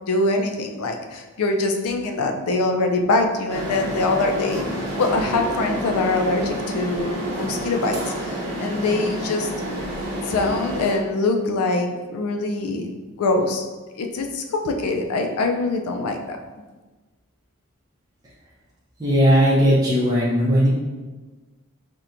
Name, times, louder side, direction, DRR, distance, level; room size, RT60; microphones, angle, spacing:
voice 1, 0.1-4.7 5.0-9.5 10.3-13.7 14.0-16.4, left 2 dB, 75° left, 4 dB, 0.4 m, -23 dB
sound 1, 3.5-11.0, right 1 dB, 85° right, 0.9 m, -29 dB
voice 2, 19.0-20.7, equal, 15° right, -8 dB, 0.6 m, -17 dB
4.2 x 2.2 x 2.5 m, 1.3 s
head